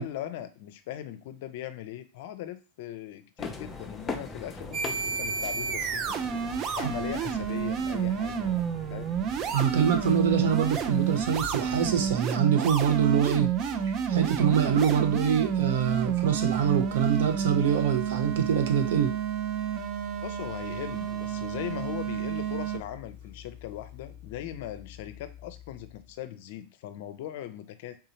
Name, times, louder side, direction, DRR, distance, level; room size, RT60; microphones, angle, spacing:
voice 1, 0.0-6.3 6.8-8.5 8.9-9.1 20.2-28.0, left 12 dB, 65° left, 10 dB, 0.5 m, -39 dB
sound 1, 3.4-12.2, left 3 dB, 20° left, 0.6 m, -41 dB
sound 2, 4.7-22.8, right 8 dB, 40° right, 0.5 m, -30 dB
voice 2, 9.5-13.5 14.1-19.1, right 8 dB, 70° right, 5 dB, 0.8 m, -25 dB
sound 3, 12.6-26.2, left 5 dB, 55° right, 1.8 m, -46 dB
3.7 x 2.7 x 2.8 m, 0.32 s
hypercardioid pair, 110°, 0 cm